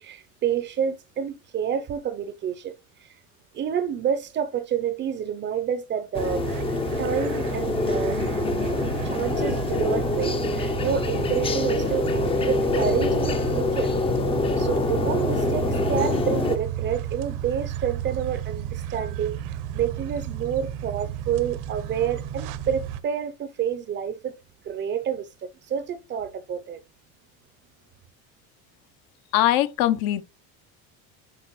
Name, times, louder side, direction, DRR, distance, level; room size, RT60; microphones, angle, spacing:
voice 1, 0.0-2.7 3.0-3.1 3.5-6.5 7.0-8.2 9.0-13.9 14.6-19.4 19.7-24.4 24.6-25.3 25.7-26.8, right 8 dB, 30° right, 0.6 m, -28 dB
sound 1, 6.1-16.6, left 3 dB, 15° left, 0.5 m, -25 dB
sound 2, 6.1-23.0, right 10 dB, 55° right, 0.8 m, -32 dB
voice 2, 29.3-30.2, left 14 dB, 65° left, 0.8 m, -21 dB
8.2 x 5.4 x 3.1 m
cardioid pair, 155°, 38 cm